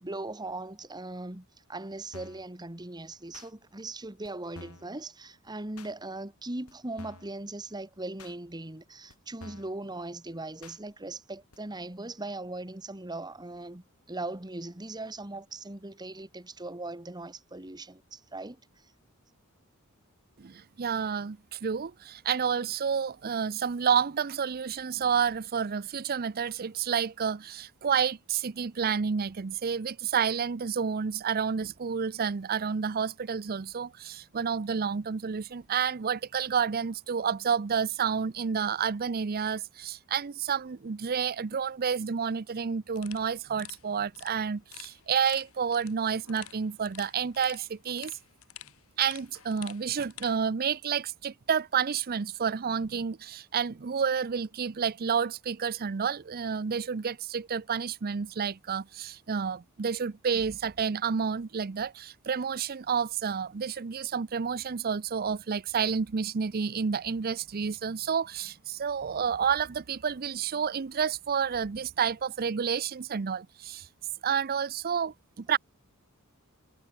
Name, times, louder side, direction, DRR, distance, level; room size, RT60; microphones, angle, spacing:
voice 1, 0.0-18.6, right 2 dB, 20° right, 1.7 m, -39 dB
sound 1, 2.1-2.5 3.3-3.5 4.2-4.3 4.5-4.9 5.8-5.9 6.7-6.8 7.0-7.3 8.2-8.4 9.1-9.2 9.4-9.8 10.6-10.8 11.5-11.6, left 2 dB, 90° left, 4.7 m, -48 dB
voice 2, 20.4-48.1 49.0-73.9 74.2-75.6, right 6 dB, 45° right, 0.5 m, -30 dB
sound 2, 42.9-50.4, left 12 dB, 70° left, 4.3 m, -50 dB
head